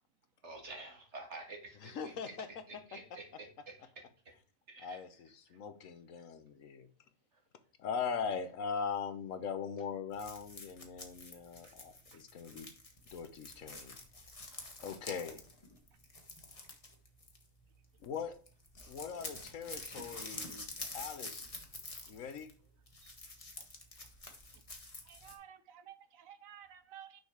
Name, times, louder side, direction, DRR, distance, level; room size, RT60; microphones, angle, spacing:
voice 1, 0.4-4.0 4.8-5.0 7.3-7.4, right 3 dB, 60° right, 2.2 m, -49 dB
voice 2, 1.8-2.5 4.8-6.9 7.8-12.7 13.1-14.0 14.8-15.4 18.0-18.4 18.9-21.5 22.1-22.5, left 6 dB, 75° left, 1.3 m, -40 dB
sound 1, 10.1-17.8 18.0-18.2 18.5-25.4, left 2 dB, 25° left, 1.4 m, -48 dB
voice 3, 25.0-27.2, right 9 dB, 90° right, 1.3 m, -54 dB
6.4 x 5.2 x 4.7 m
omnidirectional pair, 1.4 m